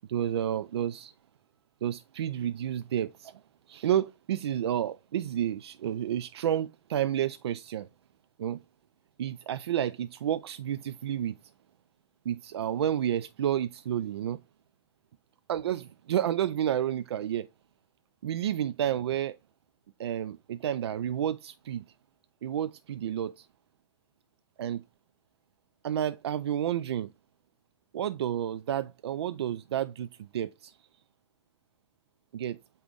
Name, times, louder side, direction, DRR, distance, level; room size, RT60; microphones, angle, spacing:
voice 1, 0.1-1.1 1.8-3.4 3.7-7.9 8.4-8.6 9.2-11.4 12.3-14.4 15.5-17.5 18.2-19.4 20.0-21.8 22.4-23.5 24.6-24.8 25.8-27.1 27.9-30.8 32.3-32.6, right 10 dB, 70° right, 0.4 m, -30 dB
8.2 x 3.0 x 5.0 m
hypercardioid pair, 110°, 14 cm